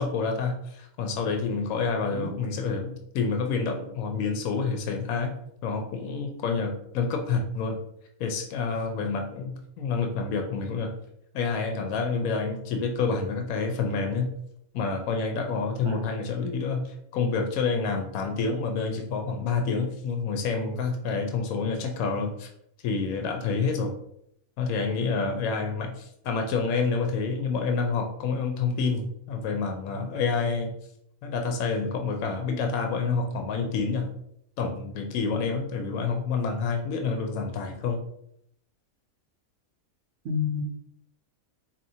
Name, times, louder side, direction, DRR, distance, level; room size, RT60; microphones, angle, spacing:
voice 1, 0.0-5.3 5.6-7.8 8.2-10.9 11.3-14.3 14.7-22.5 22.8-23.9 24.6-30.7 31.2-34.1 34.6-38.0, left 4 dB, 80° left, 4 dB, 1.0 m, -28 dB
voice 2, 40.2-40.6, left 5 dB, 65° right, 4 dB, 0.9 m, -29 dB
4.3 x 2.8 x 2.7 m, 0.72 s
omnidirectional pair, 1.5 m